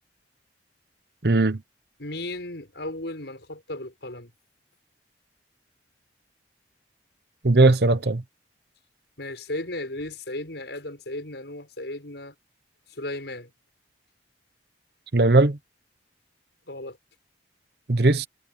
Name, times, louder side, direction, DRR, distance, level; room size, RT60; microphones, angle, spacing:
voice 1, 1.2-1.6 7.4-8.2 15.1-15.6 17.9-18.3, right 2 dB, 60° right, 1.0 m, -18 dB
voice 2, 2.0-4.3 9.2-12.3 12.9-13.5 16.7-17.0, left 1 dB, 70° left, 6.5 m, -35 dB
head